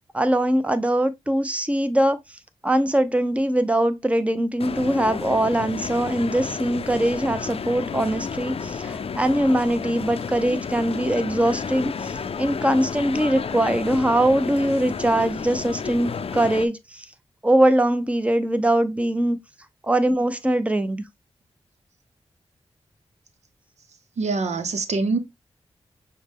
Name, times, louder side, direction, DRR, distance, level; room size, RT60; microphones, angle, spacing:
voice 1, 0.1-2.2 2.6-17.0 17.4-19.4 19.8-21.0, right 1 dB, 10° right, 0.7 m, -22 dB
sound 1, 4.6-16.7, left 6 dB, 60° left, 0.5 m, -31 dB
voice 2, 24.2-25.2, right 3 dB, 80° right, 0.7 m, -24 dB
6.2 x 2.2 x 3.4 m
cardioid pair, 50°, 11 cm